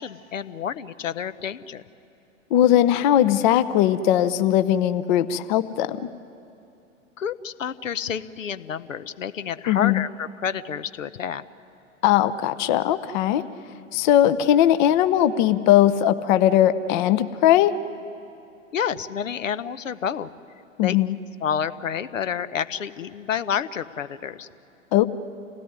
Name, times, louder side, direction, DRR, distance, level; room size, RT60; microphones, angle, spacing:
voice 1, 0.0-1.8 7.2-11.4 18.7-20.3 20.8-21.0 21.4-24.5, left 8 dB, 70° left, 14 dB, 0.9 m, -29 dB
voice 2, 2.5-6.0 9.7-10.0 12.0-13.4 13.9-17.7 20.8-21.2 24.9-25.1, left 12 dB, 35° left, 12 dB, 0.8 m, -19 dB
28.0 x 17.0 x 9.6 m, 2.7 s
figure-of-eight pair, 110°, 40 cm